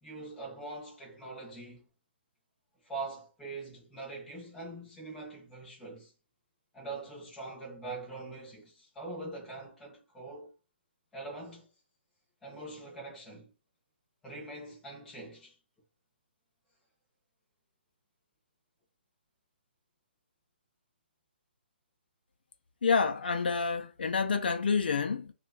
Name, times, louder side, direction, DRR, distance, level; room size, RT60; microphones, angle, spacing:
voice 1, 0.0-1.8 2.8-6.1 6.7-10.5 11.1-11.7 12.4-13.5 14.2-15.6, right 3 dB, 5° left, 0.8 m, -43 dB
voice 2, 22.8-25.3, left 5 dB, 60° left, 0.4 m, -28 dB
2.8 x 2.3 x 3.9 m
hypercardioid pair, 175°, 6 cm